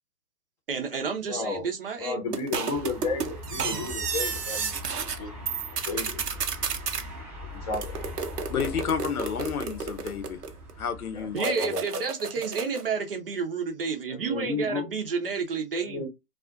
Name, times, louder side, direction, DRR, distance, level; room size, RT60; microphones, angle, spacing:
voice 1, 0.7-2.4 3.7-3.9 11.3-16.1, right 5 dB, 40° right, 0.6 m, -30 dB
voice 2, 1.3-1.7 2.0-5.3 5.7-6.2 7.4-8.1 11.1-11.8 14.1-14.9 15.8-16.1, left 4 dB, 25° left, 0.8 m, -33 dB
sound 1, 2.3-5.2 5.5-7.0 7.7-10.7 11.4-12.9, right 6 dB, 85° right, 0.7 m, -32 dB
sound 2, 2.7-11.4, left 1 dB, 5° right, 0.8 m, -41 dB
voice 3, 8.5-10.4 10.8-11.4, left 7 dB, 70° left, 0.7 m, -30 dB
2.4 x 2.3 x 2.4 m
figure-of-eight pair, 135°, 46 cm